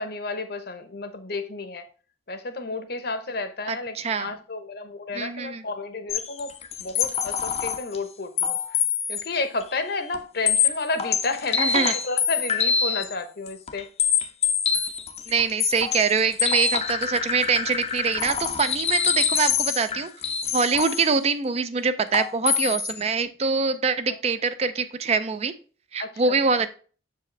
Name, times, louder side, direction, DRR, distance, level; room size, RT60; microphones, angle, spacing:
voice 1, 0.0-1.8 2.3-6.5 6.8-8.6 9.1-13.9 19.1-19.2 26.0-26.3, left 3 dB, 55° left, 0.9 m, -31 dB
voice 2, 3.7-4.4 5.1-5.6 11.6-11.9 15.3-20.1 20.5-25.5 25.9-26.7, right 5 dB, 35° right, 0.4 m, -24 dB
sound 1, 6.1-8.0 8.4-9.3 9.6-9.7 10.1-10.2 10.5-13.1 13.5-21.1 22.1-23.0, left 7 dB, 35° left, 0.6 m, -25 dB
6.9 x 4.8 x 3.2 m
head